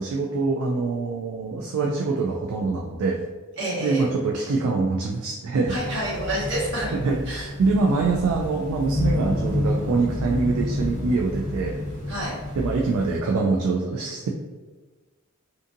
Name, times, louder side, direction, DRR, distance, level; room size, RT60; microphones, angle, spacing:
voice 1, 0.0-3.2 3.8-5.8 6.9-11.8 12.6-14.3, right 3 dB, 70° right, 0 dB, 0.3 m, -24 dB
voice 2, 3.6-4.1 5.7-6.9 7.3-7.4 12.1-12.4, right 1 dB, 55° right, -9 dB, 1.3 m, -28 dB
sound 1, 5.6-13.2, left 1 dB, 30° right, 1.4 m, -29 dB
2.6 x 2.5 x 2.5 m, 1.3 s
head